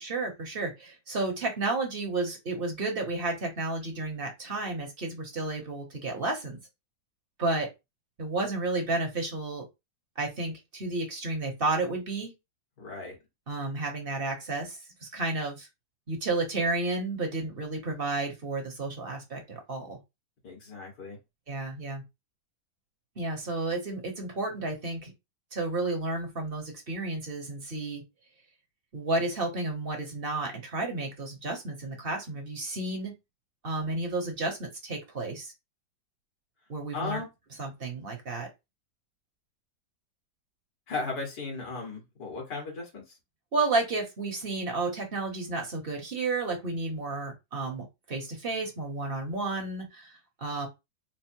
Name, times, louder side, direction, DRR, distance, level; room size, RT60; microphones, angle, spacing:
voice 1, 0.0-6.6 7.4-7.7 8.2-9.6 10.2-12.3 13.5-15.7 16.1-20.0 21.5-22.0 23.2-25.1 25.5-28.0 28.9-33.1 33.6-35.5 36.7-37.2 37.6-38.5 43.5-50.7, right 3 dB, 40° right, 2 dB, 1.0 m, -32 dB
voice 2, 12.8-13.1 20.4-21.2 36.9-37.3 40.9-43.2, left 4 dB, 70° left, -1 dB, 2.4 m, -36 dB
4.5 x 2.0 x 4.4 m, 0.23 s
omnidirectional pair, 1.9 m